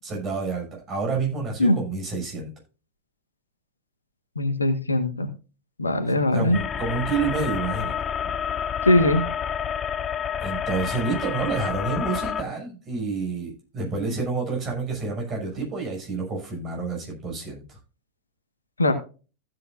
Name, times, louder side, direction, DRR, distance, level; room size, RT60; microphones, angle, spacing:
voice 1, 0.0-2.5 6.3-7.9 10.4-17.8, right 4 dB, 30° right, 0 dB, 6.4 m, -29 dB
voice 2, 4.3-5.3 5.8-6.6 8.8-9.2 18.8-18.9, left 2 dB, 80° left, 9 dB, 1.4 m, -20 dB
sound 1, 6.5-12.4, left 8 dB, 25° left, 0.5 m, -29 dB
15.0 x 8.5 x 2.5 m, 0.33 s
figure-of-eight pair, 90°, 0 cm